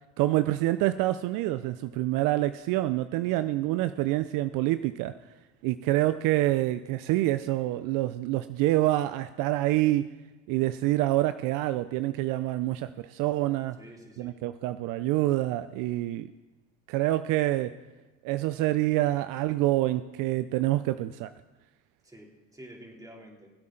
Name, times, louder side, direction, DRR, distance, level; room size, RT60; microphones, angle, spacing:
voice 1, 0.2-5.1 5.6-10.1 10.5-13.8 14.2-16.3 16.9-17.7 18.2-21.3, right 16 dB, 60° right, 12 dB, 0.5 m, -26 dB
voice 2, 3.2-3.7 13.8-14.4 22.0-23.5, right 1 dB, 10° right, 0 dB, 3.0 m, -49 dB
20.5 x 8.4 x 3.8 m, 1.2 s
supercardioid pair, 85°, 36 cm